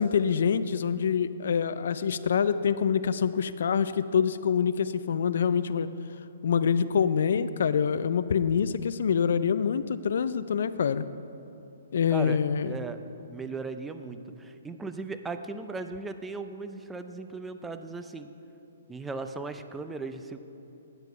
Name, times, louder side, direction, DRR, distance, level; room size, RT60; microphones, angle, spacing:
voice 1, 0.0-5.9 6.4-11.1 11.9-12.7, left 7 dB, 65° left, 14 dB, 0.3 m, -26 dB
voice 2, 12.6-13.0 13.3-18.3 18.9-20.4, right 3 dB, 10° right, 8 dB, 0.4 m, -37 dB
9.0 x 6.0 x 5.6 m, 2.9 s
hypercardioid pair, 135°, 0 cm